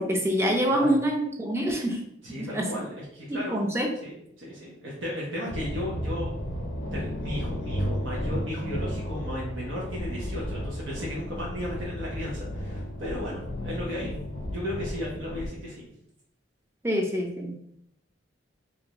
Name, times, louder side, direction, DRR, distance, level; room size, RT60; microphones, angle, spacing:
voice 1, 0.0-2.0 2.5-2.7 3.3-3.9 16.8-17.5, equal, 15° right, 2 dB, 0.4 m, -26 dB
voice 2, 2.2-3.6 4.0-4.1 4.4-6.3 6.9-14.1 14.5-15.9, left 1 dB, 85° right, -5 dB, 0.8 m, -35 dB
sound 1, 5.5-15.5, equal, 70° left, 0.6 m, -33 dB
3.2 x 2.6 x 2.9 m, 0.73 s
head